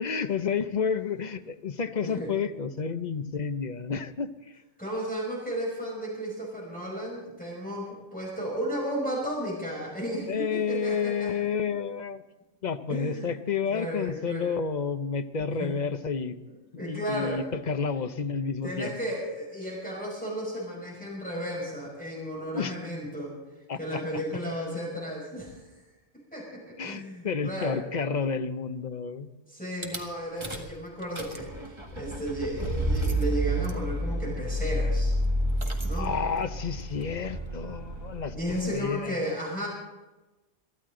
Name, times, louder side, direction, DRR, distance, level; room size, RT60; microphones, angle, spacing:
voice 1, 0.0-4.6 10.3-12.2 12.6-16.4 16.7-19.0 22.5-22.8 23.7-24.0 26.8-29.3 36.0-39.2, left 5 dB, 40° left, 9 dB, 0.8 m, -30 dB
voice 2, 4.8-11.3 12.9-13.3 13.7-14.5 15.6-15.7 16.4-17.4 18.6-23.3 23.8-25.8 26.3-27.8 29.5-35.1 35.8-36.1 38.3-39.7, equal, 5° left, -3 dB, 5.5 m, -34 dB
Rattle / Car / Engine starting, 29.8-30.0 30.4-30.7 31.0-38.8, right 1 dB, 25° right, 1.9 m, -30 dB
23.0 x 15.0 x 3.8 m, 1.1 s
omnidirectional pair, 1.2 m